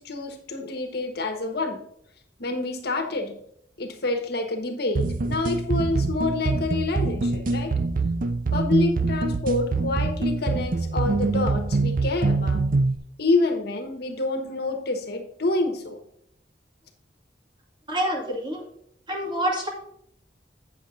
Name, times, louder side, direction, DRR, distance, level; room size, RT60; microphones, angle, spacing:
voice 1, 0.0-1.8 2.4-3.4 3.8-7.7 8.5-12.6 13.2-16.0, left 2 dB, 65° left, 5 dB, 1.3 m, -27 dB
sound 1, 5.0-13.0, right 3 dB, 50° right, 0.6 m, -24 dB
voice 2, 17.9-18.6 19.1-19.7, right 1 dB, 25° right, 0 dB, 2.2 m, -27 dB
8.5 x 7.2 x 3.8 m, 0.70 s
head